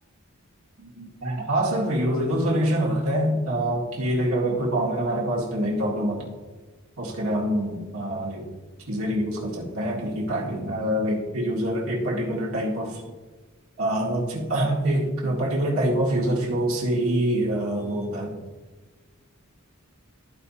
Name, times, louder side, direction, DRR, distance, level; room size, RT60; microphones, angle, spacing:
voice 1, 0.8-6.3 7.0-8.5 8.9-13.0 13.8-18.4, right 1 dB, 80° right, -4 dB, 2.1 m, -25 dB
14.5 x 5.0 x 2.8 m, 1.3 s
head